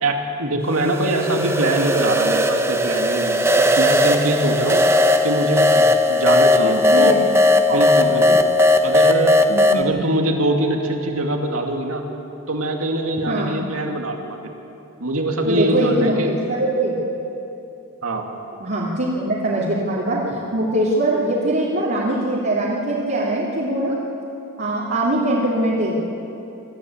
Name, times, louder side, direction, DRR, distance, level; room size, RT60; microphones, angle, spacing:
voice 1, 0.0-4.8 5.2-7.2 7.6-8.4 8.8-9.4 9.7-12.1 12.5-14.4 15.0-16.3 18.0-18.3, right 1 dB, 70° right, 2 dB, 2.5 m, -23 dB
sound 1, 0.7-9.8, left 1 dB, 10° right, 0.8 m, -17 dB
voice 2, 6.5-8.4 9.5-9.9 13.3-13.6 15.4-17.0 18.6-23.9 24.6-25.9, right 1 dB, 50° right, -7 dB, 2.9 m, -22 dB
25.5 x 14.0 x 8.7 m, 2.9 s
head